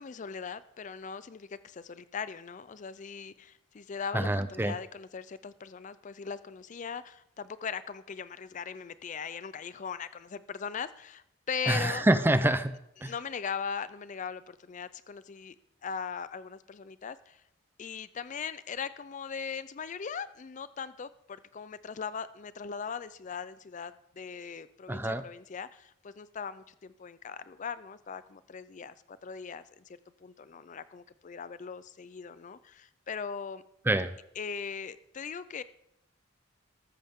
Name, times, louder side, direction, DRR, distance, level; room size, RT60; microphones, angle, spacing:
voice 1, 0.0-12.0 13.0-15.6 15.8-17.4 17.8-33.6 34.4-35.6, left 6 dB, 40° left, 15 dB, 0.4 m, -39 dB
voice 2, 4.1-4.8 11.7-12.8 13.0-13.1 24.9-25.2 33.9-34.1, right 1 dB, 10° right, 12 dB, 0.5 m, -26 dB
13.5 x 13.5 x 3.6 m, 0.78 s
head